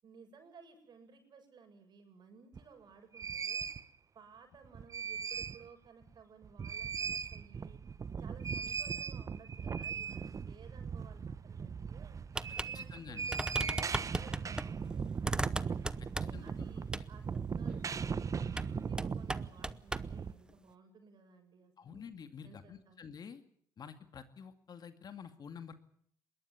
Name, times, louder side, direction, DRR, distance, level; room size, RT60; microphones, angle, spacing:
voice 1, 0.0-3.7 4.1-7.8 8.2-12.2 12.6-15.8 16.2-22.0 22.4-23.0, right 5 dB, 55° right, 6 dB, 7.5 m, -58 dB
sound 1, 2.5-2.6 3.1-3.8 4.6-5.7 6.0-6.1 6.4-20.3, right 6 dB, 35° right, 1.1 m, -38 dB
sound 2, 12.3-12.7 13.0-13.1 13.3-14.7 15.2-16.5 16.9-17.1 18.5-18.7 19.0-20.1, right 1 dB, 10° right, 0.9 m, -36 dB
voice 2, 12.7-13.4 16.0-16.5 21.8-23.4 23.8-25.7, left 7 dB, 50° left, 9 dB, 2.2 m, -49 dB
21.5 x 18.5 x 9.5 m, 0.66 s
supercardioid pair, 75°, 9 cm